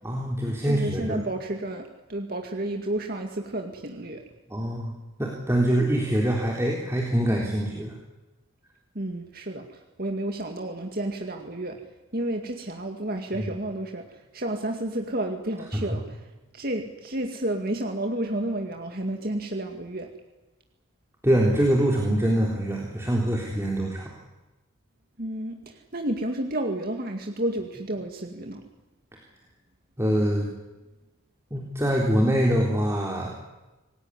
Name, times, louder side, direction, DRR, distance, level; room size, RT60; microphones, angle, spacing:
voice 1, 0.0-1.2 4.5-4.9 5.2-7.9 21.2-24.1 30.0-30.5 31.5-33.3, right 1 dB, 10° right, -1 dB, 3.7 m, -24 dB
voice 2, 0.6-4.2 8.9-11.8 12.1-20.1 25.2-28.6, right 1 dB, 45° right, 4 dB, 2.2 m, -31 dB
27.5 x 18.5 x 10.0 m, 1.1 s
head